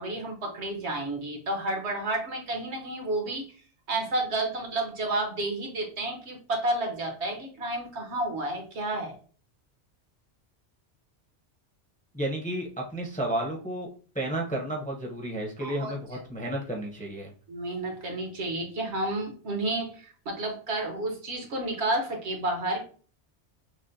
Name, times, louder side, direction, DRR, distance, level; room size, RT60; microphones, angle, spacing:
voice 1, 0.0-3.4 3.9-9.1 15.6-15.9 17.5-22.8, right 2 dB, 70° right, 2 dB, 1.3 m, -31 dB
voice 2, 12.1-13.9 14.1-17.3, right 1 dB, 10° left, 0 dB, 0.6 m, -32 dB
6.0 x 2.1 x 2.6 m, 0.39 s
omnidirectional pair, 1.2 m